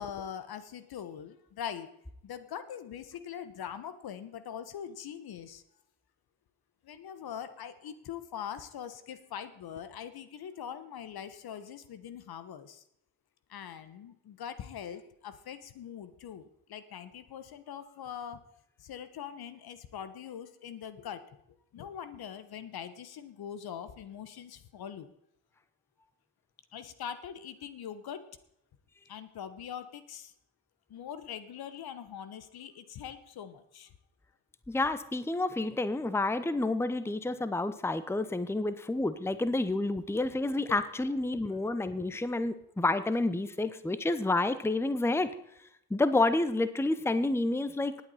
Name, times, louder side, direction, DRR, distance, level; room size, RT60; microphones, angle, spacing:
voice 1, 0.0-1.9 2.2-5.6 6.8-12.8 13.5-18.4 18.8-21.2 21.7-25.1 26.7-28.3 29.1-30.3 30.9-33.9 41.4-41.6, left 8 dB, 55° left, 12 dB, 1.2 m, -42 dB
voice 2, 34.7-45.3 45.9-48.0, left 2 dB, 5° left, 13 dB, 0.8 m, -29 dB
19.0 x 8.4 x 4.2 m, 0.75 s
hypercardioid pair, 50°, 43 cm